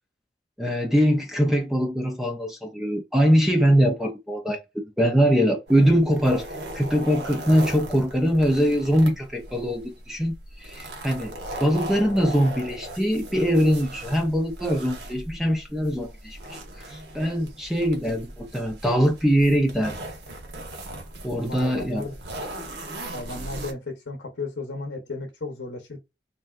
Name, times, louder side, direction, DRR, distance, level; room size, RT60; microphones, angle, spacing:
voice 1, 0.6-6.5 6.7-11.3 11.6-20.0 21.2-22.0, equal, ahead, 0.4 m, -22 dB
sound 1, 5.7-23.7, right 1 dB, 70° right, 0.8 m, -38 dB
voice 2, 11.9-12.3 21.3-22.2 23.1-26.0, left 3 dB, 80° left, 0.7 m, -35 dB
3.3 x 2.6 x 2.3 m
head